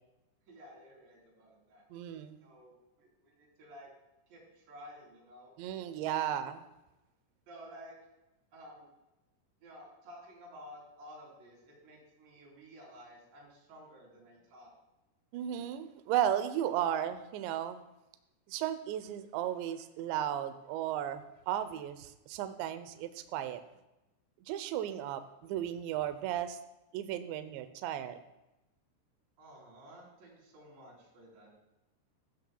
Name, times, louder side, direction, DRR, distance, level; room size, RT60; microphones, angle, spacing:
voice 1, 0.5-1.8 2.4-3.9 4.3-5.5 7.5-8.0 8.5-8.9 9.6-14.7 29.4-31.6, equal, 60° right, -4 dB, 6.1 m, -53 dB
voice 2, 1.9-2.4 5.6-6.7 15.3-17.8 18.5-23.6 24.5-26.6 26.9-28.2, right 11 dB, 80° right, 10 dB, 2.6 m, -35 dB
15.5 x 14.5 x 2.3 m, 0.95 s
omnidirectional pair, 5.9 m